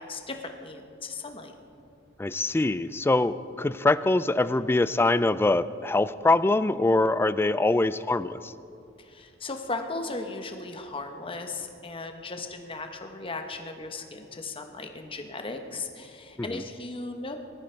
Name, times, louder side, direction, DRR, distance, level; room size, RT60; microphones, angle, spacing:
voice 1, 0.0-1.5 9.0-17.4, left 3 dB, 25° left, 5 dB, 1.1 m, -37 dB
voice 2, 2.2-8.5 16.4-16.6, left 2 dB, 10° left, 15 dB, 0.3 m, -24 dB
19.5 x 13.5 x 4.5 m, 2.5 s
head